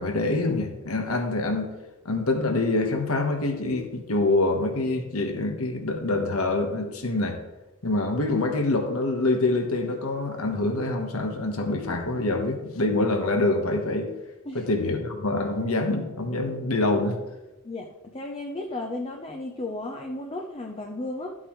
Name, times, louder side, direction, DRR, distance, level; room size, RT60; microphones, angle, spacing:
voice 1, 0.0-1.7 2.0-7.4 7.8-14.1 14.5-17.2, left 2 dB, 70° left, 4 dB, 1.4 m, -25 dB
voice 2, 17.6-21.4, left 2 dB, 25° left, 1 dB, 0.8 m, -34 dB
13.0 x 8.0 x 3.2 m, 1.0 s
head